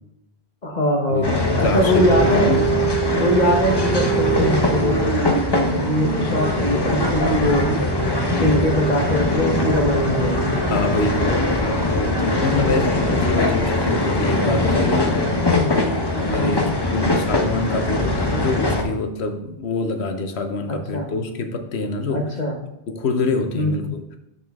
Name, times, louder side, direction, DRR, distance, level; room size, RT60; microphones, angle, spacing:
voice 1, 0.6-2.5 3.1-7.7 8.4-10.6 12.5-12.9 15.5-15.8 16.4-16.7 20.7-21.1 22.1-22.5 23.5-23.9, left 1 dB, 40° left, 1 dB, 1.1 m, -22 dB
sound 1, 1.2-18.8, left 2 dB, 25° left, 0.8 m, -22 dB
voice 2, 1.5-2.7 10.7-15.6 15.9-22.4 22.9-24.0, left 3 dB, 75° left, 6 dB, 1.2 m, -26 dB
sound 2, 1.9-16.2, right 10 dB, 55° right, 0.6 m, -29 dB
12.5 x 4.3 x 3.5 m, 0.85 s
omnidirectional pair, 1.1 m